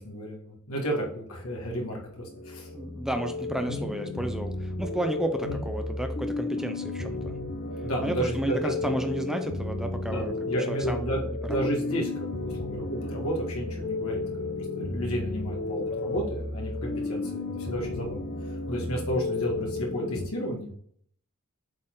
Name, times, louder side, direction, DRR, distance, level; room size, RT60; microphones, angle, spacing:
voice 1, 0.0-2.7 3.6-3.9 5.4-5.7 7.8-8.9 10.1-18.2 18.5-20.7, equal, 75° left, -1 dB, 2.0 m, -32 dB
sound 1, 1.9-20.3, left 2 dB, 40° left, 0.8 m, -33 dB
voice 2, 2.7-7.4 8.0-11.1 11.5-11.6, right 1 dB, ahead, 6 dB, 0.4 m, -32 dB
7.5 x 4.3 x 3.8 m, 0.64 s
head